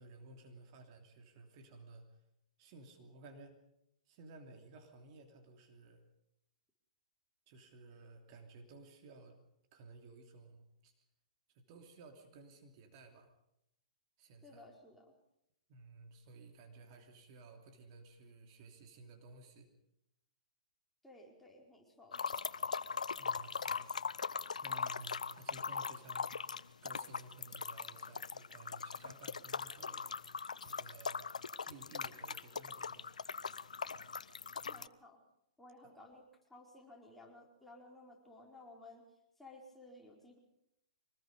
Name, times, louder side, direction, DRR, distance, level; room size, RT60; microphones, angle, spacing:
voice 1, 0.0-2.1 2.6-3.6 4.1-6.0 7.5-9.4 9.7-10.9 11.5-13.3 14.2-14.7 15.7-19.7 23.1-23.9 24.6-26.3 26.8-30.1 30.6-31.2 31.6-33.1 35.8-35.9, right 3 dB, 45° right, 3 dB, 3.0 m, -56 dB
voice 2, 14.4-15.1 21.0-22.2 34.7-35.2 35.6-36.2 36.5-39.0 39.4-40.4, left 2 dB, 5° left, -2 dB, 4.5 m, -56 dB
sound 1, 22.1-34.9, left 5 dB, 80° left, 0.7 m, -40 dB
24.5 x 20.0 x 5.3 m, 0.82 s
hypercardioid pair, 120°, 4 cm